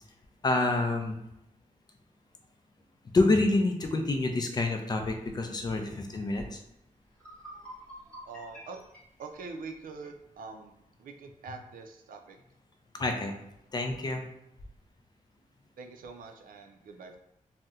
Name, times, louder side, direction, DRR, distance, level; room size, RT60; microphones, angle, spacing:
voice 1, 0.4-1.2 3.1-6.6 12.9-13.3 13.7-14.2, left 2 dB, 30° left, 4 dB, 0.4 m, -27 dB
sound 1, 7.1-10.2, equal, 5° left, 0.9 m, -48 dB
voice 2, 8.3-8.8 9.2-10.7 11.0-12.4 15.8-17.2, right 4 dB, 85° right, 5 dB, 0.4 m, -44 dB
2.7 x 2.1 x 3.5 m, 0.83 s
wide cardioid pair, 165°, 14 cm